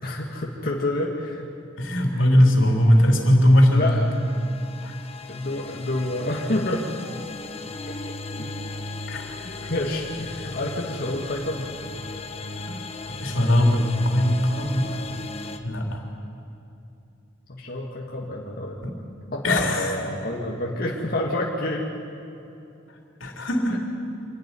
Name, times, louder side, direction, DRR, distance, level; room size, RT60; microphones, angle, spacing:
voice 1, 0.0-1.5 2.1-2.2 3.7-4.0 5.3-6.9 8.4-8.5 9.4-11.7 17.5-18.8 19.3-21.9 23.7-23.8, left 1 dB, 50° left, -2 dB, 1.9 m, -28 dB
voice 2, 1.8-4.0 4.8-4.9 9.1-9.3 12.7-12.8 13.2-15.0 15.6-16.0 18.8-18.9 19.4-19.9 23.2-23.8, left 1 dB, 85° left, 1 dB, 3.4 m, -19 dB
sound 1, 3.3-15.6, left 3 dB, 30° left, 1.1 m, -36 dB
26.0 x 11.5 x 9.9 m, 2.8 s
head